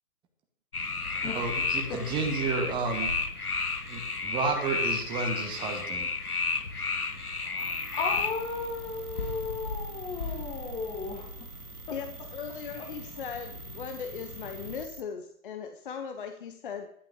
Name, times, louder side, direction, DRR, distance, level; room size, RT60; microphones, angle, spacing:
sound 1, 0.7-14.9, left 4 dB, 85° left, 1.4 m, -34 dB
voice 1, 1.3-3.1 3.8-6.1, right 4 dB, 10° right, 3 dB, 1.4 m, -31 dB
voice 2, 7.3-11.5 12.8-12.9, left 4 dB, 10° left, 2 dB, 1.4 m, -35 dB
sound 2, 7.6-15.0, right 5 dB, 70° right, 1.2 m, -46 dB
voice 3, 11.9-16.9, left 7 dB, 35° left, 6 dB, 1.0 m, -38 dB
12.0 x 11.0 x 3.7 m, 0.69 s
figure-of-eight pair, 135°, 44 cm